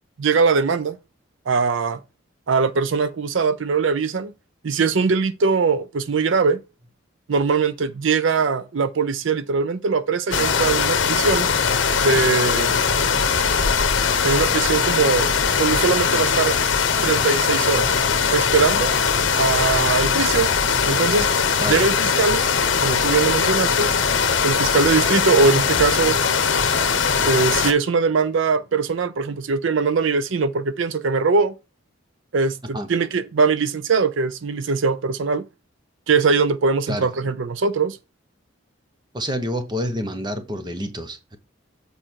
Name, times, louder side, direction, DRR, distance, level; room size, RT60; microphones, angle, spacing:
voice 1, 0.2-1.0 1.5-2.0 2.5-4.3 4.6-6.6 7.3-11.5 12.0-12.8 14.2-15.3 15.6-16.5 17.0-17.9 18.3-18.9 19.4-20.5 20.9-21.3 21.7-22.4 22.8-23.9 24.4-26.2 27.2-31.5 32.3-35.5 36.1-38.0, right 4 dB, 70° right, 0.5 m, -21 dB
sound 1, 10.3-27.7, left 6 dB, 65° left, 0.9 m, -20 dB
voice 2, 39.1-41.4, equal, 20° right, 0.9 m, -28 dB
7.6 x 4.9 x 4.5 m
head